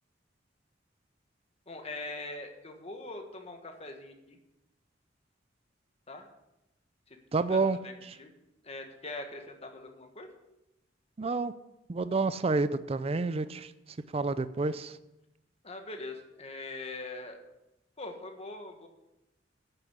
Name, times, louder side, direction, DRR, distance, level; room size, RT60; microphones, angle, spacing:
voice 1, 1.7-4.4 6.1-6.3 7.5-8.3 8.6-10.3 15.6-17.4 18.0-18.9, left 2 dB, 35° left, 4 dB, 1.5 m, -42 dB
voice 2, 7.3-7.8 8.1-8.2 11.2-11.5 11.9-13.7 14.1-14.9, right 3 dB, 30° right, 13 dB, 0.4 m, -29 dB
10.0 x 7.0 x 8.2 m, 0.92 s
head